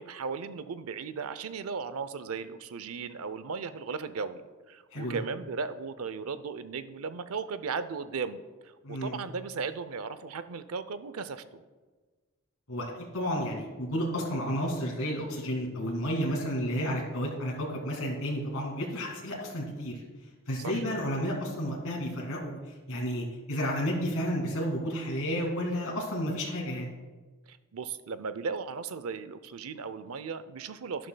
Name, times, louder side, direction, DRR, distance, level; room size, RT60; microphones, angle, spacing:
voice 1, 0.0-11.6 20.6-20.8 27.5-31.1, right 5 dB, 80° right, 13 dB, 0.5 m, -36 dB
voice 2, 8.8-9.2 12.7-20.0 20.5-22.6 22.9-26.9, equal, 80° left, -2 dB, 2.1 m, -31 dB
12.0 x 11.0 x 2.3 m, 1.3 s
head